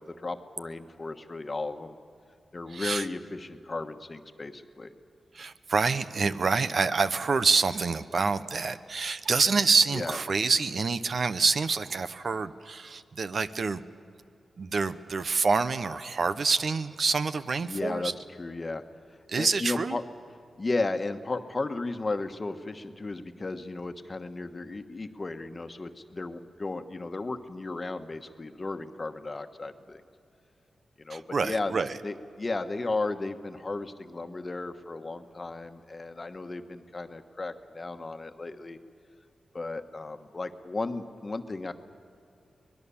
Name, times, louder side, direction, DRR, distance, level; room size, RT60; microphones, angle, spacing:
voice 1, 0.0-2.0 2.5-4.9 9.9-10.2 17.6-18.1 18.4-18.8 19.4-20.0 20.6-30.0 31.0-38.8 39.5-41.7, left 3 dB, 35° left, 8 dB, 1.3 m, -34 dB
voice 2, 2.7-3.0 5.3-13.8 14.6-18.1 19.3-20.0 31.1-32.0, right 4 dB, 60° right, 12 dB, 0.8 m, -27 dB
24.5 x 20.0 x 7.1 m, 2.5 s
cardioid pair, 70°, 0 cm